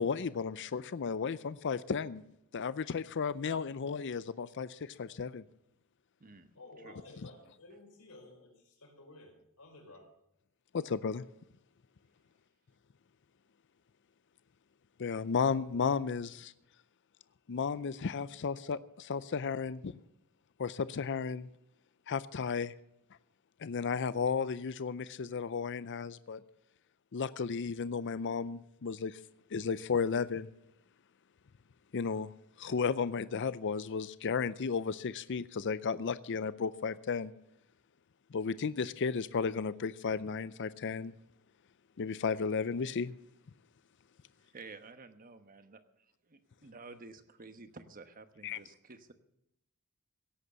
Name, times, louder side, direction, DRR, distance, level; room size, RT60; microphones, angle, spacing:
voice 1, 0.0-2.2 2.5-5.4 10.7-11.2 15.0-16.5 17.5-19.9 20.6-21.5 22.1-22.7 23.6-26.4 27.1-29.2 29.5-30.5 31.9-32.3 32.6-37.3 38.3-41.1 42.0-43.1 48.4-48.6, left 5 dB, 55° left, 16 dB, 0.5 m, -34 dB
voice 2, 6.5-10.1, left 2 dB, 85° left, 1 dB, 5.0 m, -54 dB
voice 3, 44.4-45.8 46.2-49.1, right 3 dB, 40° right, 9 dB, 1.2 m, -51 dB
17.5 x 8.2 x 6.9 m, 0.80 s
head